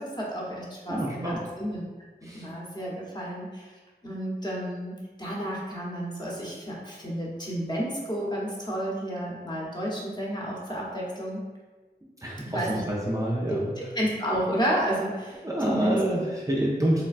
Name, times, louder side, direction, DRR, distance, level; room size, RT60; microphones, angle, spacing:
voice 1, 0.0-1.8 2.2-3.7 4.0-11.4 12.4-12.8 13.5-16.2, equal, 25° left, -5 dB, 0.8 m, -31 dB
voice 2, 0.9-1.4 2.2-2.5 12.2-13.7 15.4-17.0, right 1 dB, 20° right, -4 dB, 0.4 m, -27 dB
3.2 x 2.2 x 2.4 m, 1.3 s
wide cardioid pair, 45°, 18 cm